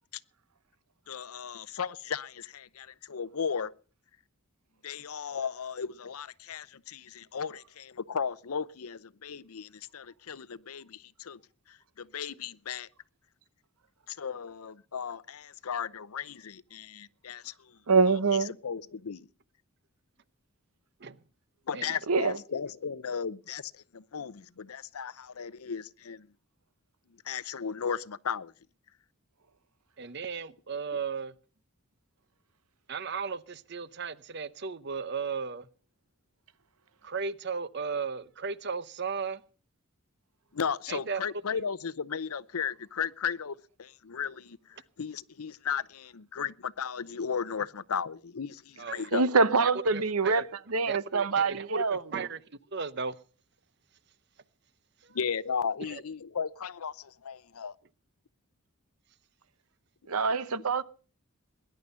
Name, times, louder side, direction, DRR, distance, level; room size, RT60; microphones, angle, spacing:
voice 1, 1.1-3.7 4.8-11.4 11.7-12.9 14.1-17.8 18.1-18.2 18.6-19.3 21.7-26.3 27.2-28.5 40.5-49.2 55.1-57.7, left 6 dB, 85° left, 0.7 m, -35 dB
voice 2, 17.9-18.5 22.1-22.4 49.1-50.4 50.7-52.0 60.1-60.8, right 4 dB, 90° right, 0.9 m, -25 dB
voice 3, 30.0-31.3 32.9-35.7 37.0-39.4 40.9-41.2 48.8-49.1 49.9-50.4 50.9-51.8 52.1-52.4 52.7-53.2 55.0-55.2 55.9-56.0, right 5 dB, 50° right, 0.7 m, -35 dB
20.0 x 11.0 x 5.5 m
head